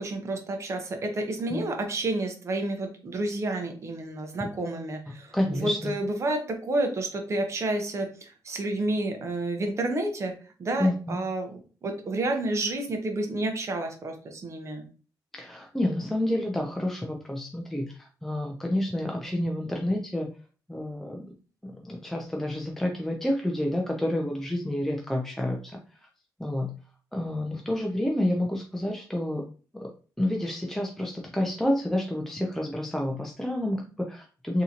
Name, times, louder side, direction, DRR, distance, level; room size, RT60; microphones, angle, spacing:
voice 1, 0.0-10.3 10.6-11.5 11.8-14.9, right 2 dB, 40° right, 4 dB, 0.8 m, -30 dB
voice 2, 5.3-5.9 10.8-11.2 15.3-20.3 20.7-21.3 21.6-26.1 26.4-26.8 27.1-29.5 29.8-29.9 30.2-34.6, left 1 dB, 5° left, 0 dB, 0.4 m, -29 dB
3.7 x 2.8 x 2.8 m, 0.38 s
cardioid pair, 120°, 7 cm